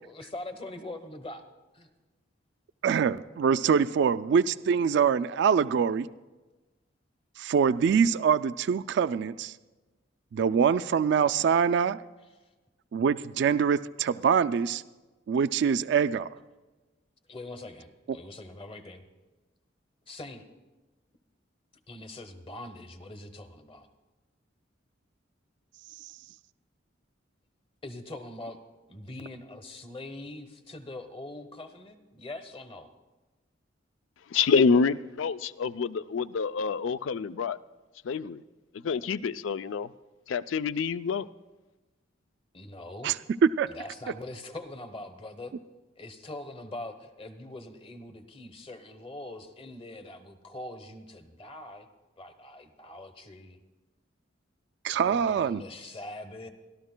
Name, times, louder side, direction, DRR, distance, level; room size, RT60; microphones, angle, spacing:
voice 1, 0.0-1.5 1.7-1.9 17.3-19.0 20.1-20.4 21.9-23.9 27.8-28.6 28.9-32.9 42.5-43.1 43.7-45.5 46.0-51.9 52.2-53.6 55.0-56.5, left 2 dB, 30° left, 1.0 m, -43 dB
voice 2, 2.8-6.1 7.4-9.5 10.3-12.0 12.9-14.8 15.3-16.3 43.0-43.2 43.6-43.7 54.8-55.6, right 7 dB, 60° right, 0.3 m, -24 dB
voice 3, 34.3-37.6 38.0-38.4 38.8-39.9 40.3-41.3, left 5 dB, 80° left, 0.4 m, -27 dB
25.0 x 12.5 x 2.2 m
head